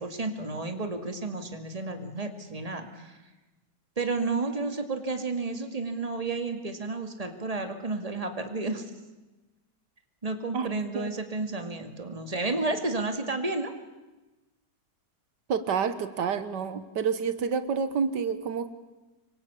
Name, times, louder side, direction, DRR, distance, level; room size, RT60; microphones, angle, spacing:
voice 1, 0.0-3.2 4.0-8.9 10.2-13.7, right 3 dB, 20° right, 6 dB, 2.3 m, -31 dB
voice 2, 15.5-18.7, right 6 dB, 85° right, 11 dB, 1.9 m, -28 dB
26.0 x 23.5 x 8.5 m, 1.1 s
omnidirectional pair, 1.8 m